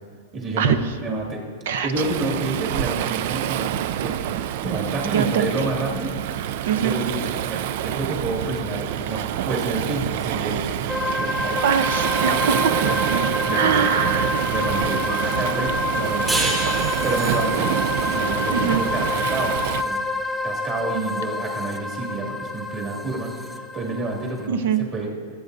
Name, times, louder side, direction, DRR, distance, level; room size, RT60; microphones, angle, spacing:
voice 1, 0.3-0.7 1.0-1.4 1.8-4.2 4.6-6.2 6.8-10.7 11.2-11.6 12.3-12.5 12.7-13.0 13.4-14.0 14.5-16.8 17.0-17.7 18.0-20.0 20.4-24.6 24.9-25.1, right 2 dB, 25° right, -1 dB, 2.1 m, -29 dB
Waves surf, 2.0-19.8, right 11 dB, 55° right, 0.3 m, -26 dB
voice 2, 5.1-5.5 6.7-7.0 11.6-12.8 13.5-14.5 18.5-18.8 24.5-24.8, right 7 dB, 75° right, 11 dB, 0.8 m, -22 dB
sound 1, 10.9-24.5, left 2 dB, 5° left, 0.5 m, -27 dB
sound 2, 16.3-19.4, right 1 dB, 10° right, 1.6 m, -29 dB
23.5 x 7.9 x 2.7 m, 2.2 s
supercardioid pair, 155°, 0 cm